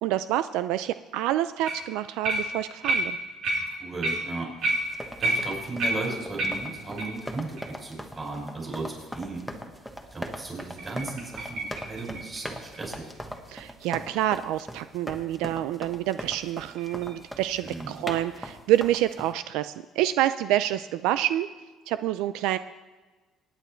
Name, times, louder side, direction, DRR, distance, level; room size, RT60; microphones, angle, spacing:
voice 1, 0.0-3.2 13.5-21.5 21.9-22.6, right 13 dB, 85° right, 13 dB, 0.4 m, -27 dB
sound 1, 1.7-1.9 2.2-7.2 7.6-7.7 8.2-8.3 8.8-8.9 10.6-13.4 16.2-17.7, right 2 dB, 60° right, 3.3 m, -31 dB
voice 2, 3.8-4.6 5.2-9.5 10.1-13.1 17.6-17.9, right 3 dB, 25° right, 0 dB, 5.1 m, -36 dB
sound 2, 4.8-19.3, equal, 5° right, 1.3 m, -41 dB
25.5 x 9.3 x 4.4 m, 1.3 s
cardioid pair, 125°, 0 cm